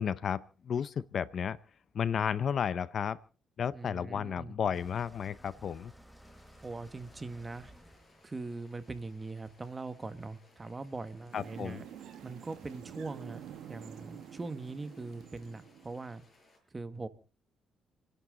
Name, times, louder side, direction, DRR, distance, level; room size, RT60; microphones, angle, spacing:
voice 1, 0.0-1.6 1.9-3.2 3.6-5.9 11.3-11.8, left 7 dB, 55° left, 0.7 m, -33 dB
voice 2, 3.7-4.5 6.6-7.7 8.2-11.8 12.2-13.4 13.7-16.2 16.7-17.1, right 3 dB, 25° right, 1.8 m, -41 dB
sound 1, 4.7-9.7, right 1 dB, ahead, 1.6 m, -57 dB
sound 2, 6.2-16.6, left 2 dB, 30° left, 7.7 m, -65 dB
sound 3, 11.3-16.2, right 9 dB, 75° right, 1.5 m, -48 dB
29.5 x 11.0 x 3.9 m
cardioid pair, 90°, 0 cm